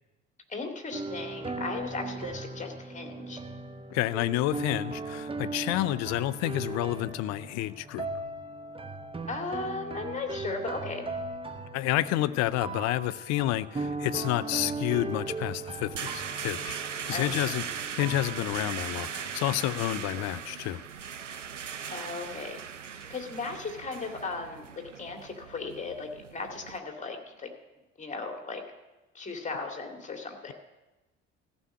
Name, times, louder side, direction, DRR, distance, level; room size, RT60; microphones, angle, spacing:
voice 1, 0.5-3.4 9.3-11.1 17.1-17.4 21.9-22.6 22.9-24.7 24.9-27.5 28.0-28.6 29.1-30.5, left 3 dB, 20° left, 3 dB, 2.2 m, -36 dB
sound 1, 0.9-19.5, right 3 dB, 15° right, 1.0 m, -38 dB
voice 2, 3.9-8.1 11.7-16.8 17.1-20.8, left 15 dB, 50° left, 17 dB, 0.6 m, -29 dB
sound 2, 15.2-26.8, right 7 dB, 90° right, 0.5 m, -39 dB
14.5 x 6.2 x 8.2 m, 1.1 s
figure-of-eight pair, 55°, 36 cm